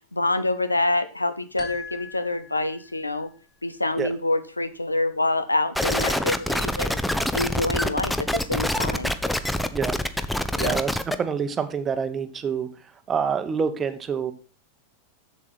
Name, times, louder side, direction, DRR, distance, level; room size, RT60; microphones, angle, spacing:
voice 1, 0.1-3.3 3.6-7.0 7.3-9.1 10.6-10.8, left 2 dB, 85° left, 12 dB, 0.6 m, -26 dB
sound 1, 1.6-3.1, left 5 dB, 25° left, 3.5 m, -41 dB
sound 2, 5.8-11.2, left 1 dB, 5° left, 0.6 m, -25 dB
voice 2, 10.6-10.9 11.2-12.7 13.1-14.3, right 6 dB, 20° right, 10 dB, 0.9 m, -26 dB
7.3 x 7.2 x 4.2 m, 0.37 s
figure-of-eight pair, 90°, 0 cm